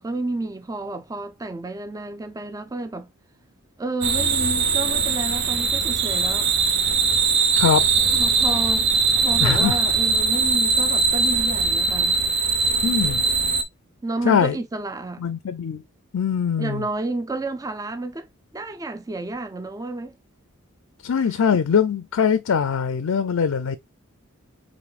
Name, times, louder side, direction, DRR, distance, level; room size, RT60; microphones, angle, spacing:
voice 1, 0.0-3.1 3.8-6.5 8.1-8.9 9.2-12.2 14.0-15.3 16.6-18.3 18.5-20.2 21.2-21.4, right 2 dB, 15° right, 0.4 m, -31 dB
sound 1, 4.0-13.6, right 5 dB, 60° right, 0.8 m, -21 dB
voice 2, 9.4-9.8 12.8-13.2 14.2-14.6 15.2-15.8 16.1-16.8 21.0-23.8, left 7 dB, 70° left, 0.5 m, -22 dB
6.1 x 3.1 x 2.3 m
head